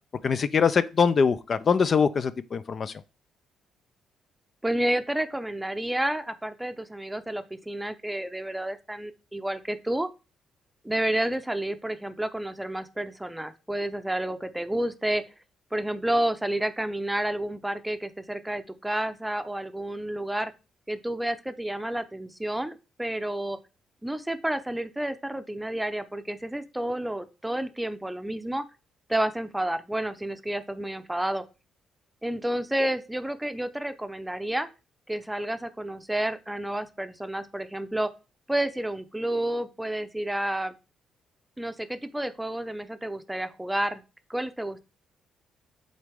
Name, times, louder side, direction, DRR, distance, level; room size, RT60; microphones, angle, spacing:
voice 1, 0.2-2.9, left 6 dB, 45° left, 0.4 m, -23 dB
voice 2, 4.6-10.1 10.8-15.2 15.7-20.5 20.9-23.6 24.0-28.7 29.1-31.4 32.2-34.7 35.1-38.1 38.5-40.7 41.6-44.0 44.3-44.8, right 1 dB, 10° right, 0.6 m, -30 dB
7.9 x 4.0 x 3.5 m
cardioid pair, 90°, 0 cm